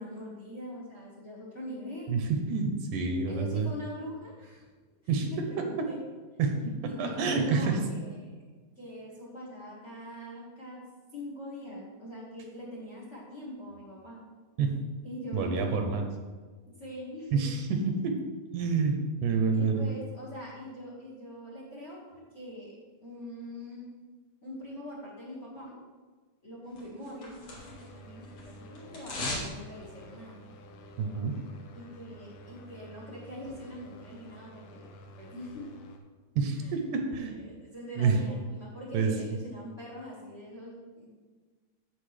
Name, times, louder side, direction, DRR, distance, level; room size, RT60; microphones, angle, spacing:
voice 1, 0.0-2.1 3.3-4.6 5.3-6.0 6.8-8.3 8.8-10.8 11.1-14.2 15.0-15.8 16.8-17.4 18.6-18.7 19.5-22.7 23.0-23.9 24.4-25.7 26.4-30.4 31.7-34.9 35.2-35.7 36.6-36.7 37.1-41.1, equal, 30° left, -5 dB, 1.5 m, -43 dB
voice 2, 2.1-3.7 5.1-5.3 5.6-5.9 6.4-7.8 14.6-14.7 15.3-16.1 17.3-18.2 18.5-19.9 31.0-31.4 36.4-37.3 38.0-38.2 38.9-39.1, right 4 dB, 75° right, 4 dB, 2.2 m, -28 dB
sound 1, 26.8-28.0 28.2-29.5 29.8-29.9, left 2 dB, 50° left, 2.5 m, -37 dB
sound 2, 27.6-36.0, equal, 80° left, 2.4 m, -50 dB
15.0 x 5.2 x 3.3 m, 1.4 s
omnidirectional pair, 3.7 m